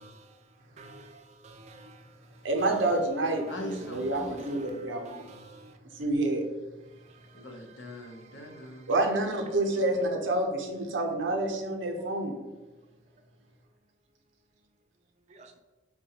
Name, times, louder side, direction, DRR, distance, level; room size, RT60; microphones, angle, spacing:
voice 1, 0.8-1.9 4.4-4.7 5.1-5.6 15.3-15.6, right 2 dB, 35° right, 5 dB, 0.3 m, -50 dB
voice 2, 2.4-5.2 5.9-6.4 8.9-12.4, right 2 dB, 80° right, 2 dB, 0.6 m, -28 dB
voice 3, 3.5-4.4 7.3-9.1, left 1 dB, 75° left, 2 dB, 0.7 m, -42 dB
4.8 x 2.2 x 2.8 m, 1.2 s
head